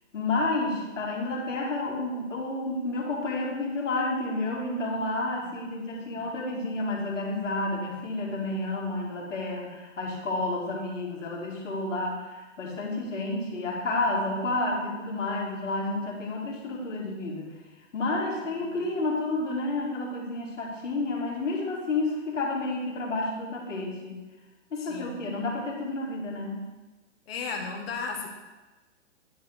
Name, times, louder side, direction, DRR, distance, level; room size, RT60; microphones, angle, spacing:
voice 1, 0.1-17.5 17.9-24.2 24.7-26.6, left 2 dB, 80° left, -2 dB, 2.1 m, -30 dB
voice 2, 5.4-6.3 18.4-18.9 24.8-25.3 27.3-28.3, left 4 dB, 55° left, 2 dB, 1.5 m, -37 dB
9.4 x 3.5 x 4.6 m, 1.2 s
hypercardioid pair, 145°, 37 cm